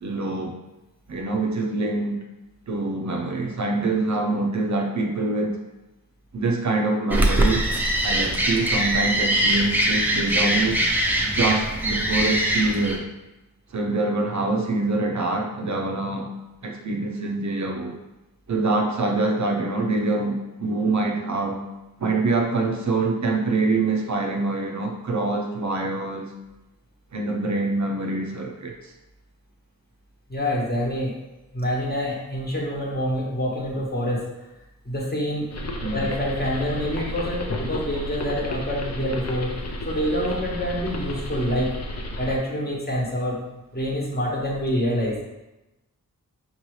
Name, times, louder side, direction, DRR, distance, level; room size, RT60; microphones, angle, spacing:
voice 1, 0.0-0.6 1.1-2.2 2.7-5.6 6.3-7.7 8.0-10.8 11.2-13.1 13.7-16.3 16.6-18.0 18.5-21.6 22.0-26.3 27.1-28.9 35.8-36.1, right 2 dB, 55° right, 2 dB, 0.5 m, -25 dB
sound 1, 7.1-13.0, right 1 dB, 5° right, 0.5 m, -22 dB
voice 2, 30.3-31.2 31.5-34.3 34.8-35.5 35.9-39.5 39.9-41.8 42.2-43.4 43.7-45.2, equal, 30° left, -3 dB, 1.1 m, -26 dB
sound 2, 35.5-42.4, left 1 dB, 45° left, 0.6 m, -32 dB
5.3 x 2.7 x 3.1 m, 1.0 s
wide cardioid pair, 100°, 35 cm